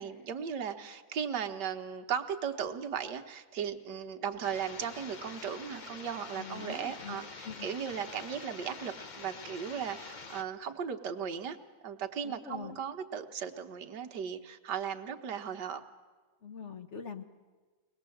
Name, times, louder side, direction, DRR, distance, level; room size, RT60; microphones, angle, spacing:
voice 1, 0.0-11.6 11.8-15.8, right 7 dB, 60° right, 6 dB, 1.6 m, -37 dB
sound 1, 4.4-10.4, left 4 dB, 75° left, 0.4 m, -46 dB
voice 2, 6.4-7.8 12.2-12.8 16.4-17.2, left 6 dB, 50° left, 7 dB, 0.9 m, -44 dB
23.5 x 19.5 x 7.8 m, 1.3 s
omnidirectional pair, 2.2 m